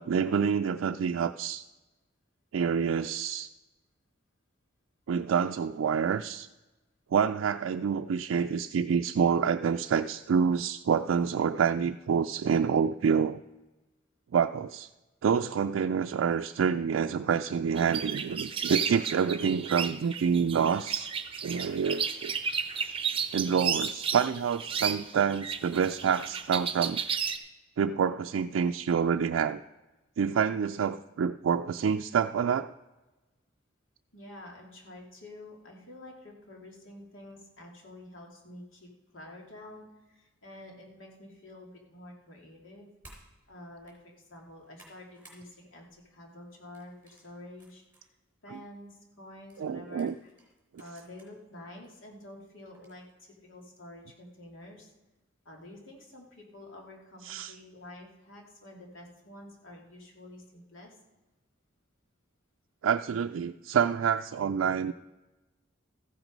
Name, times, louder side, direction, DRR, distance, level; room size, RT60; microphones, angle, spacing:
voice 1, 0.0-1.6 2.5-3.5 5.1-6.5 7.1-13.4 14.3-14.9 15.2-21.1 21.4-22.3 23.3-27.0 27.8-29.6 30.2-32.7 49.6-50.2 57.2-57.5 62.8-64.9, right 7 dB, 90° right, 6 dB, 0.3 m, -27 dB
sound 1, 17.8-27.4, right 7 dB, 30° right, 0.8 m, -33 dB
voice 2, 34.1-42.9 43.5-47.8 48.4-50.3 50.8-54.9 55.4-61.0, left 1 dB, 85° left, 0 dB, 2.5 m, -49 dB
sound 2, 43.0-43.3 43.7-44.0 44.4-45.4 45.8-46.1 46.7-48.0 48.5-48.6 49.5-51.3 51.8-51.9 52.7-53.1, right 1 dB, 10° right, 4.2 m, -57 dB
14.0 x 9.1 x 5.2 m, 1.1 s
head